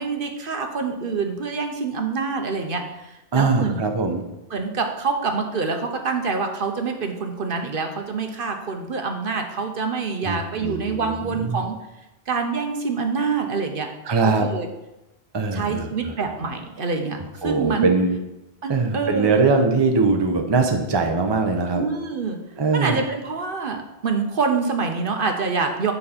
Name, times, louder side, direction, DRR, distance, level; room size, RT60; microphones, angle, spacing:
voice 1, 0.0-3.8 4.5-11.8 12.3-13.9 14.2-14.7 15.5-17.9 18.6-19.4 21.7-22.4 22.7-25.9, right 4 dB, 60° right, 4 dB, 1.0 m, -26 dB
voice 2, 3.3-4.2 10.2-11.6 14.0-14.5 15.3-16.2 17.4-18.1 18.7-21.8 22.6-23.0, right 4 dB, 30° right, 4 dB, 0.7 m, -21 dB
9.2 x 5.5 x 4.2 m, 0.97 s
omnidirectional pair, 1.1 m